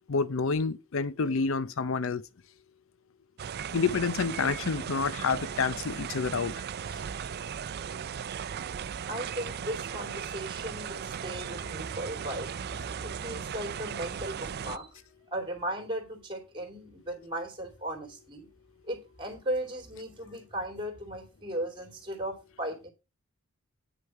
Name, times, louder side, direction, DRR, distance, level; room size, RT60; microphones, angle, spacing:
voice 1, 0.1-2.2 3.7-6.6 6.9-7.0, left 5 dB, 65° left, 0.6 m, -28 dB
sound 1, 3.4-14.8, right 7 dB, 50° right, 0.4 m, -37 dB
voice 2, 9.1-12.5 13.0-15.0 15.3-18.5 18.9-22.9, right 1 dB, 25° right, 2.8 m, -36 dB
9.0 x 6.4 x 4.7 m
head